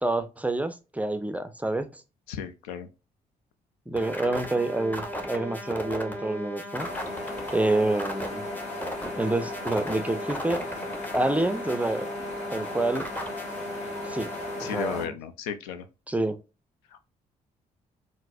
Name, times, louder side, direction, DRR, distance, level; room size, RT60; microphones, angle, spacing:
voice 1, 0.0-2.0 3.9-6.9 7.5-8.5 9.2-10.7 11.1-12.1 12.5-13.1 14.0-14.3 14.6-15.1 16.1-16.4, right 2 dB, 5° right, 0.5 m, -27 dB
voice 2, 2.3-2.9 14.6-15.8, left 8 dB, 85° left, 0.4 m, -34 dB
sound 1, 4.0-14.9, equal, 10° left, 0.9 m, -36 dB
sound 2, 6.8-15.0, left 3 dB, 35° left, 1.3 m, -38 dB
3.9 x 2.0 x 2.5 m
hypercardioid pair, 45°, 19 cm